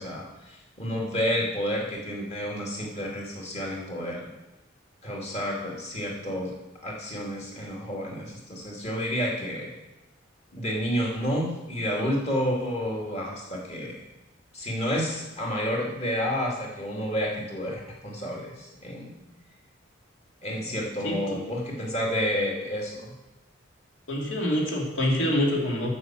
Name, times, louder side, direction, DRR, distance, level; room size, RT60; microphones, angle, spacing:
voice 1, 0.0-4.3 5.0-6.5 6.8-9.7 10.5-14.0 14.5-19.1 20.4-23.1, equal, 35° left, -2 dB, 2.5 m, -30 dB
voice 2, 24.1-25.9, left 1 dB, 65° left, -1 dB, 2.5 m, -25 dB
9.7 x 5.7 x 7.6 m, 0.97 s
head